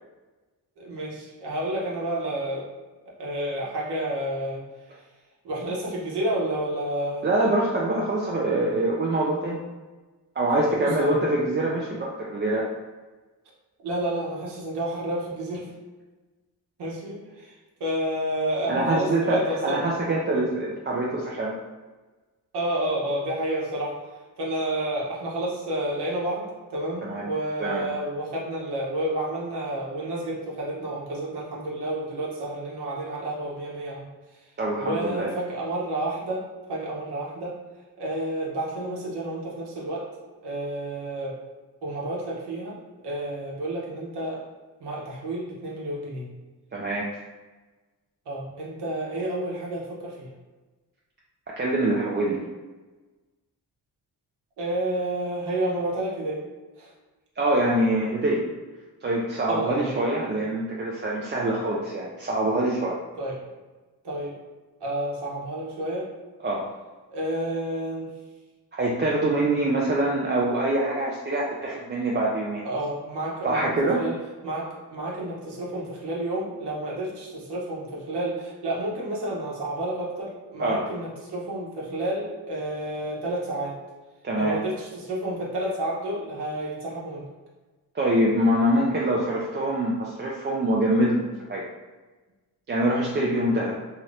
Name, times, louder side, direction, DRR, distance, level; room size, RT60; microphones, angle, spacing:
voice 1, 0.8-2.7 3.2-4.6 5.4-7.3 10.7-11.2 13.8-15.7 16.8-17.5 17.8-19.9 22.5-24.0 24.4-34.0 34.3-34.4 34.8-37.5 38.0-40.1 40.4-41.4 41.8-42.8 43.0-44.4 44.8-46.3 48.3-50.3 54.6-56.4 56.8-56.9 59.5-59.9 63.2-63.4 64.0-64.3 64.8-66.1 67.1-68.1 72.6-73.7 74.0-74.1 74.4-83.8 84.4-87.3, right 1 dB, 85° right, -4 dB, 1.0 m, -30 dB
voice 2, 7.2-9.6 10.4-12.7 18.7-21.5 27.0-27.2 27.6-27.8 34.6-35.3 46.7-47.1 51.6-52.4 57.4-58.4 59.0-63.0 66.4-66.7 68.8-72.7 73.4-74.0 80.6-80.8 84.2-84.5 87.9-91.6 92.7-93.8, right 1 dB, 30° right, -4 dB, 0.4 m, -24 dB
2.8 x 2.5 x 3.2 m, 1.3 s
cardioid pair, 90°, 39 cm